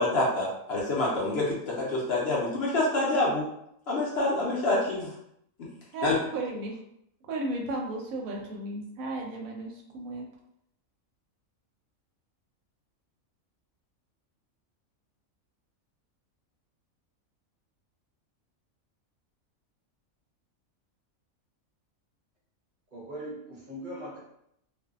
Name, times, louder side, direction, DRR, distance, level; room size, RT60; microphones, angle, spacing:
voice 1, 0.0-3.5 3.9-5.1 6.0-6.2, left 2 dB, 60° left, -5 dB, 0.7 m, -27 dB
voice 2, 5.9-6.8 7.3-10.3, right 2 dB, 85° right, 0 dB, 1.0 m, -34 dB
voice 3, 22.9-24.2, right 1 dB, 45° right, -5 dB, 0.7 m, -40 dB
2.5 x 2.2 x 2.3 m, 0.76 s
omnidirectional pair, 1.4 m